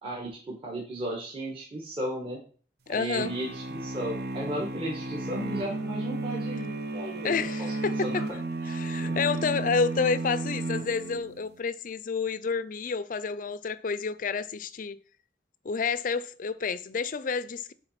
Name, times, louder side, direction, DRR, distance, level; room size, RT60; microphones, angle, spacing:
voice 1, 0.0-2.4 2.9-8.2 9.0-9.1, right 1 dB, 30° right, 1.5 m, -35 dB
voice 2, 2.9-3.3 7.2-8.2 8.7-15.0 15.6-17.7, left 5 dB, 50° left, 0.5 m, -29 dB
sound 1, 3.2-11.5, right 2 dB, 60° right, 0.8 m, -33 dB
7.8 x 3.8 x 5.8 m
head